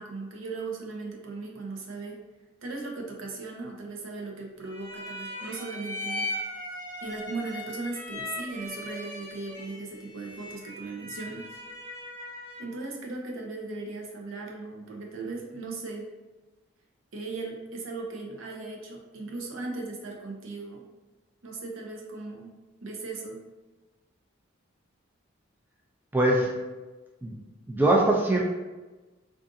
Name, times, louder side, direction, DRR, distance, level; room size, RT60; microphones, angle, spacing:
voice 1, 0.0-2.2 2.6-6.3 7.0-11.5 12.6-16.1 17.1-20.9 21.4-22.5 22.8-23.4, right 3 dB, 80° right, 1 dB, 0.6 m, -37 dB
sound 1, 4.7-12.8, left 1 dB, 40° right, 0.8 m, -38 dB
voice 2, 26.1-26.6 27.2-27.4 27.7-28.4, right 1 dB, 10° right, -2 dB, 0.3 m, -22 dB
3.7 x 2.4 x 2.6 m, 1.2 s
head